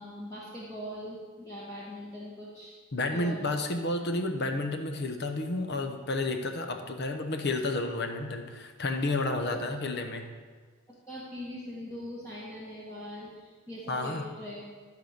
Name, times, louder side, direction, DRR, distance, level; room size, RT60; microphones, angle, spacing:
voice 1, 0.0-2.8 3.1-3.4 9.4-9.6 11.1-14.6, equal, 15° left, -7 dB, 1.6 m, -41 dB
voice 2, 2.9-10.3 13.9-14.2, left 2 dB, 55° left, 5 dB, 0.9 m, -31 dB
13.0 x 5.0 x 6.6 m, 1.5 s
head